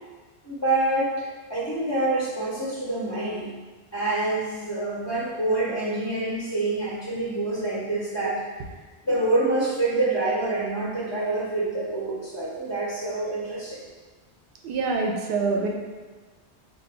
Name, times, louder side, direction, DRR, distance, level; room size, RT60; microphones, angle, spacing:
voice 1, 0.4-1.1 1.5-3.5 3.9-8.4 9.0-13.8, right 2 dB, 20° left, -8 dB, 0.5 m, -26 dB
voice 2, 14.6-15.7, right 4 dB, 65° right, 1 dB, 0.7 m, -25 dB
2.5 x 2.2 x 4.0 m, 1.3 s
omnidirectional pair, 1.1 m